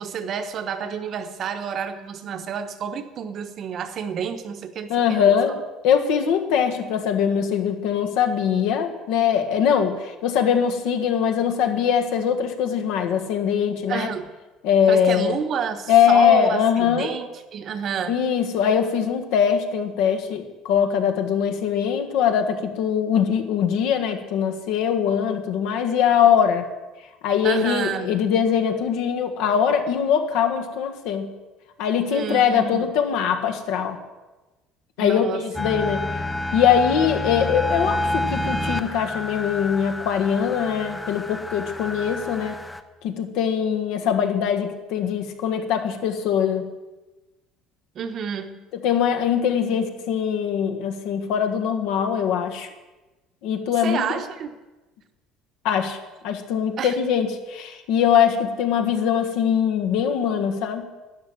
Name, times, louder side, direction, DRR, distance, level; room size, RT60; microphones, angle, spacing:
voice 1, 0.0-5.3 13.9-14.3 14.9-18.2 27.4-28.1 32.1-32.9 35.0-35.4 47.9-48.6 53.8-54.5 56.8-56.9, right 7 dB, 35° right, 9 dB, 1.0 m, -29 dB
voice 2, 4.9-5.5 5.8-14.1 14.6-15.4 15.9-17.1 18.1-26.7 27.2-31.3 31.8-34.0 35.0-36.2 36.5-42.5 43.0-46.7 48.8-52.7 53.4-54.0 55.6-56.0 56.2-60.9, left 8 dB, 65° left, 5 dB, 1.6 m, -22 dB
sound 1, 35.5-42.8, left 1 dB, 5° left, 0.6 m, -29 dB
12.5 x 10.5 x 7.8 m, 1.1 s
cardioid pair, 170°, 0 cm